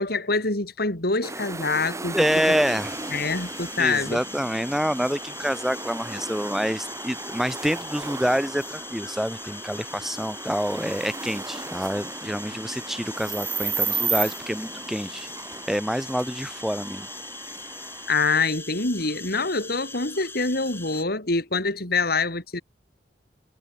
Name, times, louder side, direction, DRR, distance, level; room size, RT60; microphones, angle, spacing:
voice 1, 0.0-2.6 3.1-4.2 18.1-22.6, left 3 dB, 60° left, 4.2 m, -25 dB
sound 1, 1.2-18.1, right 4 dB, 15° right, 2.5 m, -35 dB
voice 2, 2.1-3.0 3.8-15.3 15.7-17.1, equal, ahead, 0.5 m, -27 dB
sound 2, 2.7-21.0, left 3 dB, 15° left, 3.3 m, -41 dB
head